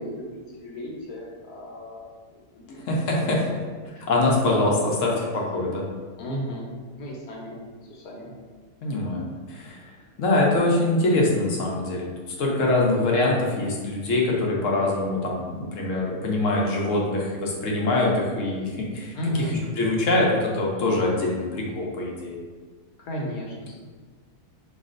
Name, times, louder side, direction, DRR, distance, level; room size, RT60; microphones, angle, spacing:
voice 1, 0.0-2.0 2.5-2.8 3.2-3.6 4.7-5.1 6.2-6.7 7.0-7.6 7.9-8.3 19.1-19.5 23.0-23.8, equal, 75° left, -3 dB, 1.3 m, -34 dB
voice 2, 2.7-3.4 4.1-5.9 8.8-9.8 10.2-12.1 12.4-19.5 19.8-22.4, left 2 dB, 60° left, -3 dB, 0.9 m, -24 dB
5.9 x 2.4 x 2.5 m, 1.5 s
omnidirectional pair, 1.7 m